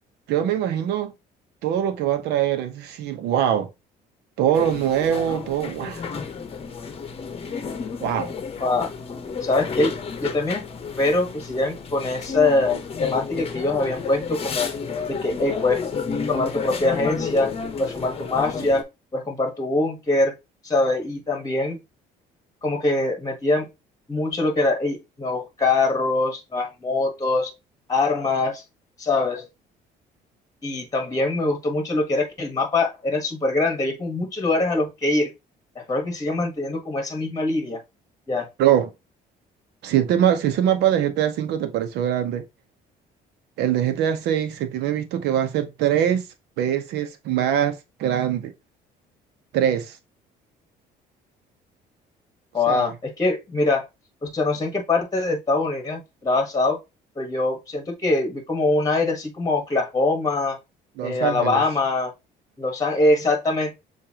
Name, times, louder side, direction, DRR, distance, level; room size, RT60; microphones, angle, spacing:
voice 1, 0.3-1.1 1.6-3.7 4.4-6.0 8.0-8.3 38.6-38.9 39.8-42.4 43.6-46.2 46.6-48.5 49.5-50.0 52.7-52.9 61.0-61.6, right 10 dB, 80° right, 0.9 m, -23 dB
sound 1, 4.5-18.8, left 5 dB, 35° left, 0.9 m, -31 dB
voice 2, 8.6-8.9 9.4-10.6 11.0-14.7 15.1-15.8 16.3-17.5 17.8-18.8 19.1-20.3 20.6-21.8 22.6-23.7 24.1-27.5 27.9-28.6 29.0-29.5 30.6-35.3 35.7-37.8 38.3-38.5 52.5-53.9 54.2-56.8 57.2-60.6 61.0-62.1 62.6-63.8, left 2 dB, 20° left, 1.3 m, -23 dB
6.8 x 2.6 x 2.9 m
cardioid pair, 110°, 17 cm